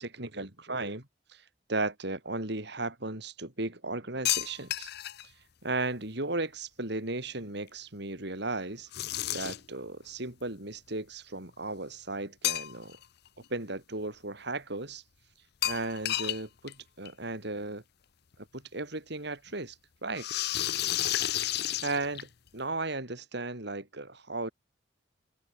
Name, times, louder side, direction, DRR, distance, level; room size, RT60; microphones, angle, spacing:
voice 1, 0.0-4.9 5.6-8.9 9.3-13.0 13.5-15.0 15.6-17.8 18.4-19.8 20.0-20.3 21.8-24.5, right 2 dB, 65° right, 4.8 m, -35 dB
sound 1, 4.3-5.2 8.9-9.8 12.4-13.0 13.4-13.5 15.6-16.4 16.7-16.8 17.1-17.2 18.3-18.4 20.1-22.5, left 13 dB, 60° left, 0.6 m, -31 dB
head